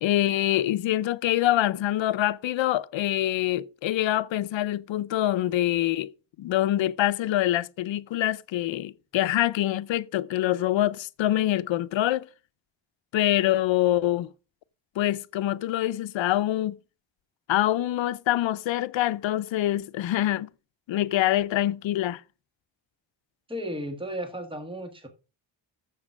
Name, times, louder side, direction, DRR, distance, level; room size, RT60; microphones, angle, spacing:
voice 1, 0.0-6.1 6.4-12.3 13.1-14.3 15.0-16.8 17.5-20.5 20.9-22.2, left 13 dB, 90° left, 0.6 m, -25 dB
voice 2, 23.5-25.1, equal, 10° right, 1.7 m, -34 dB
7.3 x 7.2 x 6.0 m
cardioid pair, 100°, 44 cm